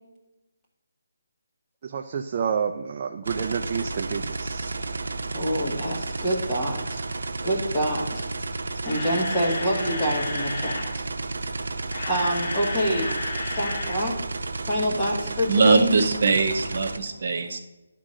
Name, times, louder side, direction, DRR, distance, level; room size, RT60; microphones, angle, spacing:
voice 1, 1.8-4.8, right 6 dB, 25° right, 4 dB, 0.3 m, -29 dB
sound 1, 3.2-17.0, right 3 dB, 75° right, 0.8 m, -32 dB
voice 2, 5.3-7.0 7.4-8.2 8.8-11.0 12.1-13.2 13.5-14.2 14.6-15.9, equal, 10° left, -4 dB, 1.4 m, -26 dB
Camera, 8.5-10.9 11.7-14.0 14.3-14.4 14.9-15.0, left 2 dB, 45° left, 1.2 m, -33 dB
voice 3, 15.5-17.6, right 4 dB, 45° right, 4 dB, 0.9 m, -21 dB
11.0 x 3.7 x 6.2 m, 1.0 s
hypercardioid pair, 175°, 0 cm